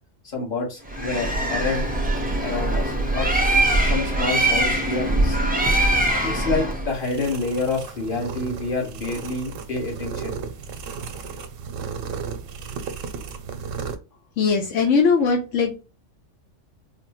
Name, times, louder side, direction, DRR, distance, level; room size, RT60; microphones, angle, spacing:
voice 1, 0.2-1.9 2.4-3.3 3.8-5.5 6.2-10.5, left 3 dB, 45° left, -1 dB, 1.4 m, -28 dB
Bird, 0.9-6.9, right 1 dB, 15° right, 0.3 m, -22 dB
sound 1, 6.9-14.0, right 6 dB, 85° right, 0.9 m, -34 dB
voice 2, 14.4-15.7, left 5 dB, 80° left, 2 dB, 1.0 m, -20 dB
4.1 x 2.1 x 2.9 m, 0.32 s
omnidirectional pair, 1.3 m